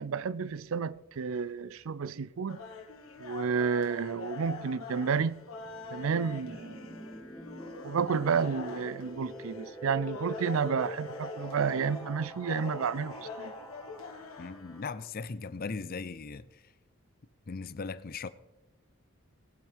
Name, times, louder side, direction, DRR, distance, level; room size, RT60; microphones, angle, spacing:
voice 1, 0.0-2.6 3.2-5.4 5.9-7.0 7.8-13.5, right 6 dB, 70° right, 0.4 m, -31 dB
sound 1, 2.5-14.8, left 4 dB, 70° left, 1.7 m, -44 dB
sound 2, 5.6-15.1, right 1 dB, ahead, 2.5 m, -45 dB
voice 2, 14.4-16.5 17.5-18.3, left 4 dB, 40° left, 0.5 m, -38 dB
19.0 x 9.0 x 3.4 m
head